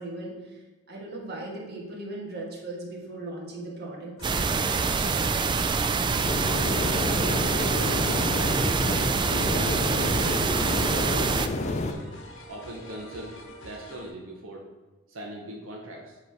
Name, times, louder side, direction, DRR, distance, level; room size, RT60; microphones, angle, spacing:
voice 1, 0.0-4.5, right 2 dB, 55° right, -2 dB, 1.6 m, -38 dB
sound 1, 4.2-14.1, left 1 dB, 70° left, 0.9 m, -46 dB
sound 2, 4.2-11.5, right 4 dB, 25° right, 0.3 m, -25 dB
sound 3, 6.2-11.9, left 2 dB, 35° left, 0.5 m, -30 dB
voice 2, 7.0-8.6 9.1-12.1 12.5-13.4 13.6-14.7 15.1-16.2, right 1 dB, 90° right, -1 dB, 1.0 m, -41 dB
7.8 x 3.2 x 5.8 m, 1.3 s
head